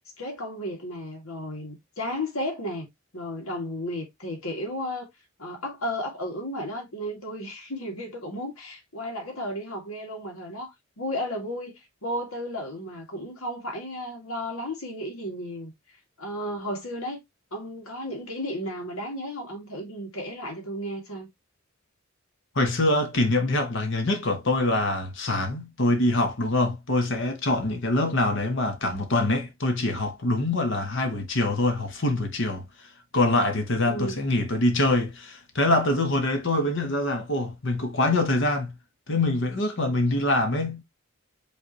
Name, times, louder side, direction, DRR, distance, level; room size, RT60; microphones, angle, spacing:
voice 1, 0.2-2.9 3.1-5.1 5.4-15.7 16.2-17.2 17.5-21.3 33.9-34.3, equal, 90° left, 2.0 m, -33 dB
voice 2, 22.5-32.6 33.1-38.7 39.1-40.8, left 2 dB, 60° left, 1.1 m, -24 dB
5.5 x 3.3 x 2.9 m
head